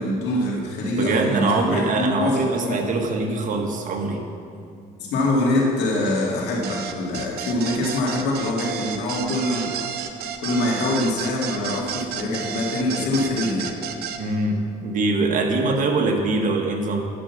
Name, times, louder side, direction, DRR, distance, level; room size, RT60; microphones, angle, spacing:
voice 1, 0.0-2.8 5.0-9.7 10.4-13.8, left 1 dB, 80° left, -2 dB, 2.4 m, -24 dB
voice 2, 1.0-4.2 14.2-17.1, right 3 dB, 50° right, 2 dB, 1.4 m, -23 dB
sound 1, 6.6-14.2, right 8 dB, 70° right, 0.8 m, -31 dB
10.0 x 6.3 x 7.1 m, 2.3 s
cardioid pair, 110°, 17 cm